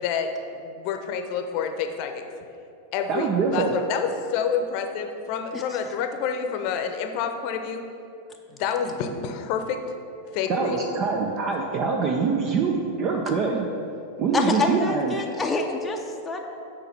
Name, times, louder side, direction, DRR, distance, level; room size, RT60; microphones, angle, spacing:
voice 1, 0.0-2.2 2.9-7.8 8.5-9.8 10.3-10.9, left 6 dB, 55° left, 6 dB, 0.7 m, -28 dB
voice 2, 3.1-3.7 10.5-13.7 14.2-15.1, right 5 dB, 45° right, 1 dB, 0.6 m, -24 dB
voice 3, 14.3-16.4, left 3 dB, 20° left, 1 dB, 0.6 m, -26 dB
6.7 x 4.5 x 5.9 m, 2.6 s
hypercardioid pair, 100°, 0 cm